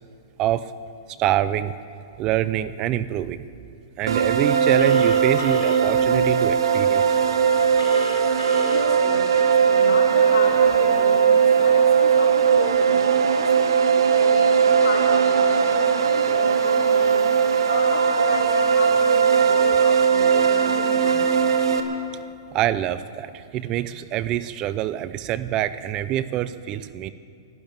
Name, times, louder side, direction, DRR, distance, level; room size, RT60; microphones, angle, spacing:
voice 1, 1.2-1.7 2.2-3.5 4.0-7.2 22.5-27.1, right 12 dB, 25° right, 15 dB, 0.4 m, -25 dB
sound 1, 4.1-21.8, right 7 dB, 75° right, 1.4 m, -19 dB
Telephone, 4.8-5.8 7.8-8.8, left 2 dB, 90° left, 3.4 m, -32 dB
voice 2, 8.6-13.0 13.4-13.8 14.1-21.4, left 3 dB, 70° left, -2 dB, 4.1 m, -32 dB
12.5 x 12.0 x 9.1 m, 2.4 s
hypercardioid pair, 150°, 2 cm